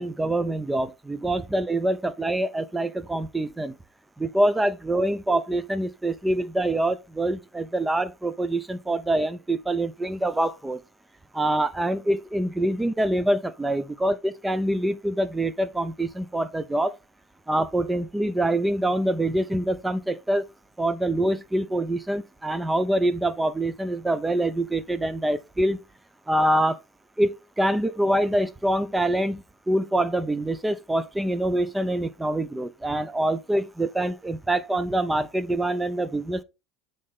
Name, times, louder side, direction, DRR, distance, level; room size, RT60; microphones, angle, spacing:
voice 1, 0.0-3.7 4.2-10.8 11.3-16.9 17.5-20.4 20.8-25.8 26.3-26.8 27.2-36.4, right 1 dB, 10° right, 0.6 m, -25 dB
8.4 x 3.9 x 3.6 m
supercardioid pair, 105°, 0 cm